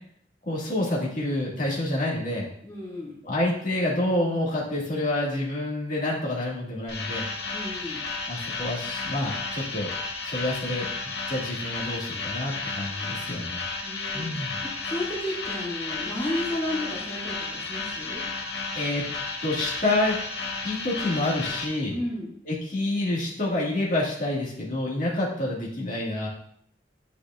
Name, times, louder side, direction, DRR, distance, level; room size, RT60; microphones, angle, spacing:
voice 1, 0.5-2.5 3.2-7.2 8.3-9.9 10.2-10.9 11.3-13.6 14.1-14.6 18.8-19.0 19.4-20.2 20.6-22.0 22.5-26.3, left 1 dB, 45° left, -5 dB, 1.9 m, -28 dB
voice 2, 2.6-3.1 7.5-8.1 13.8-18.2 21.9-22.3, left 1 dB, 20° left, -8 dB, 2.8 m, -33 dB
sound 1, 6.9-21.7, left 4 dB, 70° left, 1.0 m, -33 dB
8.5 x 4.9 x 2.5 m, 0.66 s
head